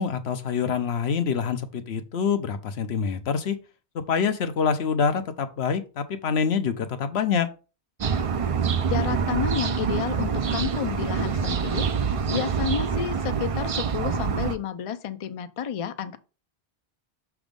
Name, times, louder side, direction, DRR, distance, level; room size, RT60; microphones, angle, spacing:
voice 1, 0.0-3.6 3.9-7.5, left 6 dB, 75° left, 1.0 m, -26 dB
sound 1, 8.0-14.6, right 6 dB, 45° right, 0.4 m, -26 dB
voice 2, 8.8-16.2, left 8 dB, 45° left, 0.4 m, -31 dB
6.1 x 3.6 x 5.1 m
omnidirectional pair, 1.1 m